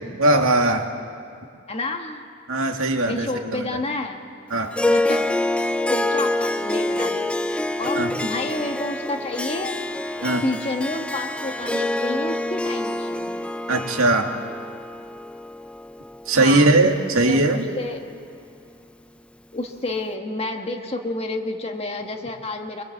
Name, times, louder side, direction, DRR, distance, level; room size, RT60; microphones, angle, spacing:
voice 1, 0.2-0.9 2.5-3.8 4.5-4.8 7.9-8.1 10.2-10.4 13.7-14.3 16.3-17.7, right 2 dB, 80° right, 3 dB, 2.2 m, -20 dB
voice 2, 1.7-2.3 2.7-4.3 4.9-5.3 5.9-7.3 7.8-9.8 10.4-13.4 16.4-16.7 17.2-17.4 17.8-18.0 19.5-22.8, left 2 dB, 30° left, 3 dB, 1.8 m, -29 dB
Harp, 4.7-17.3, left 2 dB, 5° left, 0.6 m, -26 dB
25.0 x 23.5 x 8.2 m, 2.4 s
head